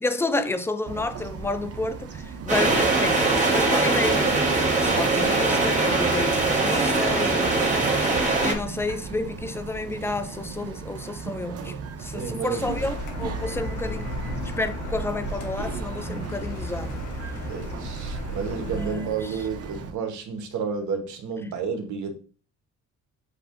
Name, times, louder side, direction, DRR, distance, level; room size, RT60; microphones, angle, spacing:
voice 1, 0.0-4.5 4.8-7.7 8.4-11.7 12.0-14.1 14.6-17.0 18.6-19.1 21.4-21.5, left 2 dB, 10° left, 0.4 m, -30 dB
Bird vocalization bird call bird song, 0.8-19.9, right 5 dB, 50° right, 0.7 m, -38 dB
sound 1, 2.5-8.5, right 3 dB, 25° right, 1.6 m, -22 dB
voice 2, 12.1-12.7 17.3-22.2, right 5 dB, 70° right, 1.1 m, -31 dB
Car, 12.6-18.9, equal, 85° left, 1.1 m, -33 dB
7.8 x 2.6 x 2.5 m
cardioid pair, 90°, 30 cm